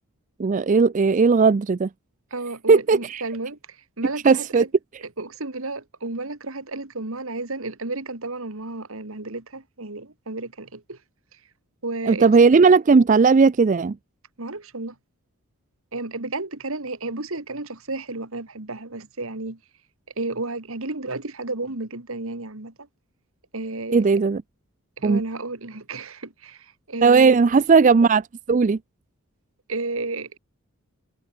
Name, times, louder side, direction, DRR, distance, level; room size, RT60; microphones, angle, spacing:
voice 1, 0.4-1.9 2.7-3.2 4.2-4.6 12.1-14.0 23.9-24.4 25.0-25.2 27.0-28.8, right 4 dB, 35° right, 0.4 m, -17 dB
voice 2, 2.3-4.7 5.2-11.0 11.8-12.3 14.4-15.0 15.9-19.6 20.2-22.9 23.5-24.0 25.0-27.4 29.7-30.4, right 2 dB, 65° right, 2.2 m, -32 dB
head